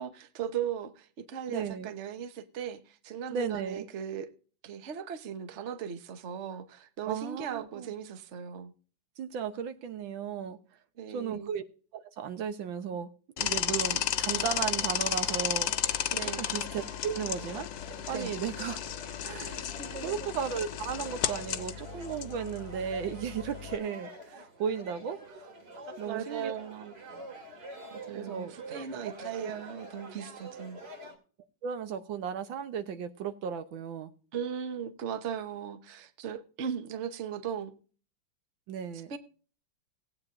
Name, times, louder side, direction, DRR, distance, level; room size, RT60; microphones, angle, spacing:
voice 1, 0.0-4.3 4.6-8.7 11.0-11.5 16.1-16.4 18.1-18.3 19.4-20.2 26.0-26.9 27.9-30.8 34.3-37.8 39.1-39.2, right 8 dB, 45° right, 1.1 m, -38 dB
voice 2, 1.5-1.9 3.3-3.8 7.1-7.9 9.2-10.6 11.1-11.6 11.9-13.1 13.4-15.7 16.4-17.7 18.1-18.8 19.2-19.7 20.0-25.5 26.0-26.5 28.1-28.8 29.4-29.5 31.6-34.1 38.7-39.1, right 7 dB, 80° right, 1.7 m, -35 dB
sound 1, 13.4-23.8, left 11 dB, 80° left, 1.5 m, -33 dB
sound 2, 14.1-31.2, equal, 65° right, 2.9 m, -47 dB
18.5 x 8.8 x 2.5 m
omnidirectional pair, 2.1 m